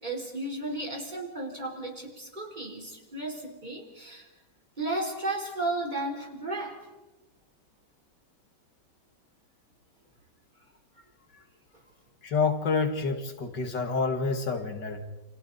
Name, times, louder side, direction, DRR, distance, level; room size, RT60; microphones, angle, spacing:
voice 1, 0.0-4.3 4.8-6.9, right 2 dB, 25° right, 1 dB, 4.1 m, -34 dB
voice 2, 12.2-15.0, left 4 dB, 80° left, 6 dB, 2.5 m, -28 dB
29.0 x 27.0 x 4.1 m, 1.1 s
omnidirectional pair, 1.9 m